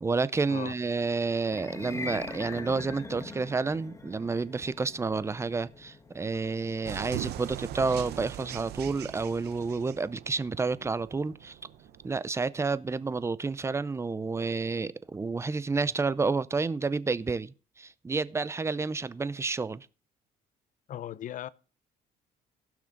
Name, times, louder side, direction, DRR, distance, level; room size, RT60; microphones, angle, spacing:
voice 1, 0.0-11.6 12.0-19.9, right 4 dB, 15° right, 0.5 m, -30 dB
sound 1, 1.4-11.7, left 3 dB, 15° left, 1.4 m, -44 dB
sound 2, 6.8-12.1, right 13 dB, 75° right, 0.8 m, -41 dB
voice 2, 20.9-21.5, left 11 dB, 50° left, 0.6 m, -37 dB
16.0 x 6.0 x 3.8 m
cardioid pair, 110°, 17 cm